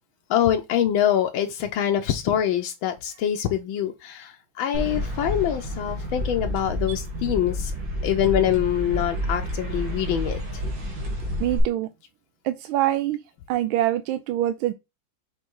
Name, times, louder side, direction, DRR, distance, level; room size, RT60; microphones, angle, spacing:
voice 1, 0.3-7.7 8.0-10.6, left 10 dB, 80° left, 1.4 m, -24 dB
sound 1, 4.7-11.6, equal, 70° right, 2.6 m, -29 dB
voice 2, 11.4-11.9 12.4-13.2 13.5-14.7, right 13 dB, 90° right, 1.4 m, -24 dB
6.6 x 3.1 x 4.6 m
omnidirectional pair, 2.1 m